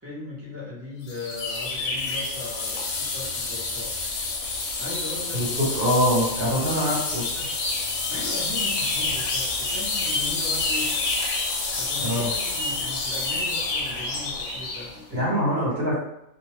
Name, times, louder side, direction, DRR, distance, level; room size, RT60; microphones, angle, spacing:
voice 1, 0.0-3.9 4.8-5.8 6.8-7.4 8.1-11.0 11.7-15.4, left 2 dB, 15° right, -7 dB, 0.6 m, -38 dB
sound 1, 1.1-14.9, left 3 dB, 70° left, 0.9 m, -28 dB
voice 2, 5.3-7.2 12.0-12.3 15.1-16.0, equal, 50° right, -6 dB, 1.0 m, -24 dB
2.7 x 2.1 x 3.1 m, 0.82 s
omnidirectional pair, 1.4 m